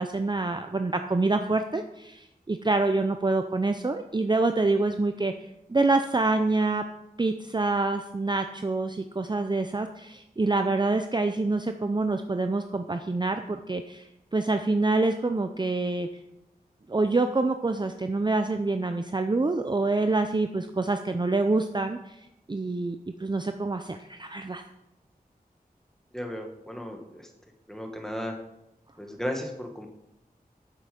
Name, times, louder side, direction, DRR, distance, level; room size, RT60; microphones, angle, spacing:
voice 1, 0.0-5.3 5.7-6.8 7.2-16.1 16.9-22.2 22.5-24.6, right 3 dB, 30° right, 7 dB, 0.5 m, -26 dB
voice 2, 26.1-27.3 27.7-28.3 29.0-29.9, equal, 5° left, 3 dB, 1.7 m, -35 dB
8.3 x 7.6 x 5.3 m, 0.87 s
wide cardioid pair, 60°, 16 cm